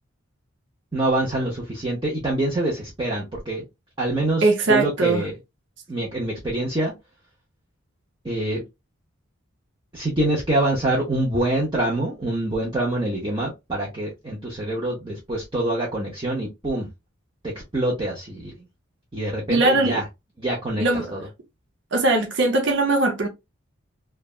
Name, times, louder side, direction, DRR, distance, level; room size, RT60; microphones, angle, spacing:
voice 1, 0.9-3.7 4.0-5.3 5.9-6.9 8.2-8.6 9.9-16.9 17.7-18.5 19.1-20.0 20.4-20.8 21.1-21.2, right 1 dB, 25° right, 0.7 m, -25 dB
voice 2, 4.4-5.3 19.5-20.0 20.8-21.1 21.9-23.3, right 2 dB, 55° right, 0.7 m, -20 dB
3.2 x 2.3 x 2.3 m
head